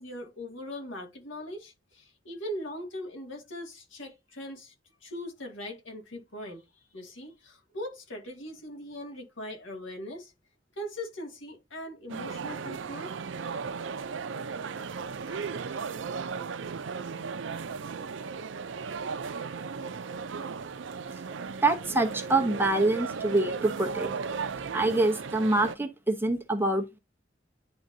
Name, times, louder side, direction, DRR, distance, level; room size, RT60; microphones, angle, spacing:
voice 1, 0.0-4.7 5.0-10.3 10.8-13.1 15.3-15.4, left 1 dB, 90° left, 2.3 m, -40 dB
sound 1, 12.1-25.8, right 5 dB, 75° right, 0.5 m, -36 dB
voice 2, 21.6-24.1 24.7-27.0, right 2 dB, 10° right, 0.9 m, -26 dB
10.5 x 3.7 x 2.7 m
head